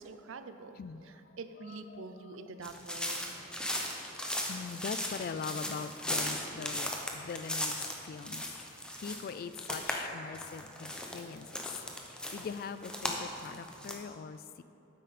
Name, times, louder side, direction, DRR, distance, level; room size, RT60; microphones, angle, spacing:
voice 1, 0.0-3.3, right 4 dB, 70° right, 9 dB, 0.5 m, -46 dB
voice 2, 1.7-2.5 4.5-8.4 9.0-11.6 12.3-14.6, left 5 dB, 50° left, 12 dB, 0.3 m, -42 dB
sound 1, 2.6-9.9 10.2-13.9, left 1 dB, 5° left, 0.8 m, -37 dB
9.2 x 7.7 x 4.2 m, 2.7 s
head